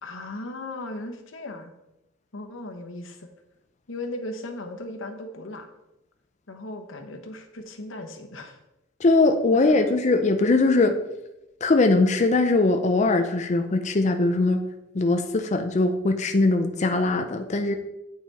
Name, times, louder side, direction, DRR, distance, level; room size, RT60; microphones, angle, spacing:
voice 1, 0.0-1.7 2.3-3.3 3.9-5.7 6.5-8.6 9.5-9.9, left 2 dB, 90° left, 4 dB, 1.1 m, -37 dB
voice 2, 9.0-11.0 11.6-14.6 14.9-17.7, left 2 dB, 35° left, 5 dB, 0.5 m, -21 dB
8.6 x 5.8 x 4.2 m, 0.92 s
head